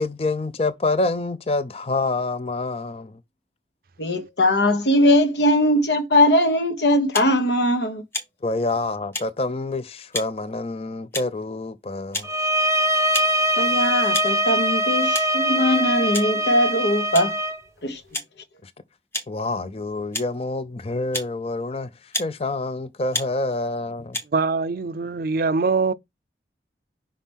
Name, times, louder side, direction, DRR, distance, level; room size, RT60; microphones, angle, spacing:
voice 1, 0.0-3.1 8.4-12.3 18.6-18.7 19.3-21.9 22.2-24.2, left 2 dB, 35° left, 0.5 m, -27 dB
voice 2, 4.0-8.0 13.6-17.3 17.8-18.0, left 1 dB, 80° left, 1.3 m, -20 dB
sound 1, 7.1-7.3 8.1-8.3 9.1-9.3 10.1-10.3 11.1-11.4 12.1-12.3 13.1-13.3 14.1-14.3 15.1-15.3 16.1-16.3 17.1-17.3 18.1-18.3 19.1-19.3 20.1-20.3 21.1-21.3 22.1-22.3 23.1-23.3 24.1-24.3, left 2 dB, 15° left, 0.9 m, -29 dB
sound 2, 12.2-17.6, equal, 15° right, 0.7 m, -22 dB
voice 3, 24.3-25.9, right 4 dB, 55° right, 0.5 m, -23 dB
5.8 x 5.0 x 3.5 m
head